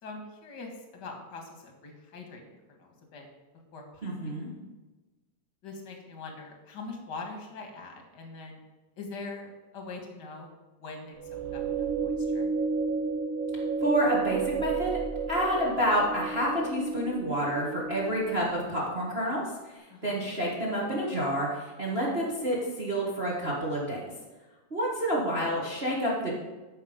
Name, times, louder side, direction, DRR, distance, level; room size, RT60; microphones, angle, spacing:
voice 1, 0.0-3.3 3.7-4.7 5.6-8.6 9.0-10.5 10.8-12.5 19.9-20.2, left 3 dB, 45° left, 2 dB, 1.6 m, -43 dB
voice 2, 4.0-4.5 13.8-15.0 15.3-24.1 24.7-26.3, equal, 50° right, -4 dB, 0.6 m, -29 dB
sound 1, 11.2-18.5, right 5 dB, 75° right, 3.1 m, -32 dB
13.0 x 5.6 x 5.1 m, 1.2 s
omnidirectional pair, 4.1 m